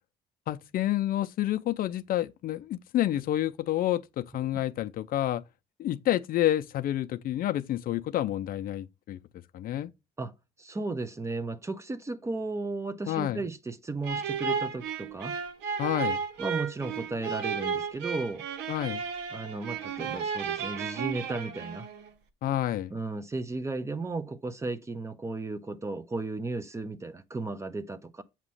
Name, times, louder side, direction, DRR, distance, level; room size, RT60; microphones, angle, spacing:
voice 1, 0.5-5.4 5.8-9.2 9.5-9.9 13.1-13.4 15.8-16.2 18.7-19.0 22.4-22.9, left 13 dB, 60° left, 0.5 m, -29 dB
voice 2, 10.6-15.4 16.4-18.4 19.3-21.9 22.9-28.2, right 3 dB, 15° right, 0.7 m, -35 dB
sound 1, 14.0-22.1, right 6 dB, 85° right, 1.0 m, -33 dB
7.4 x 3.0 x 5.5 m
cardioid pair, 110°, 17 cm